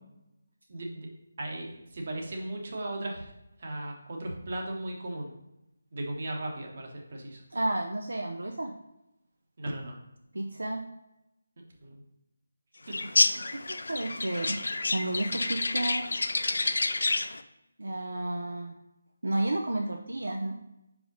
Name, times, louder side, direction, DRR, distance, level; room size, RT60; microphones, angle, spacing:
voice 1, 0.7-1.1 1.4-3.3 3.6-5.3 5.9-7.4 9.6-10.0 11.8-12.0 12.9-13.4, right 1 dB, 45° right, 0 dB, 1.2 m, -37 dB
voice 2, 7.5-8.7 10.3-10.8 13.7-14.6 14.9-16.1 17.8-18.8 19.2-20.6, right 1 dB, 70° right, 2 dB, 0.6 m, -31 dB
sound 1, 12.9-17.4, left 3 dB, 60° left, 0.4 m, -28 dB
4.9 x 4.9 x 3.9 m, 0.89 s
figure-of-eight pair, 155°, 0 cm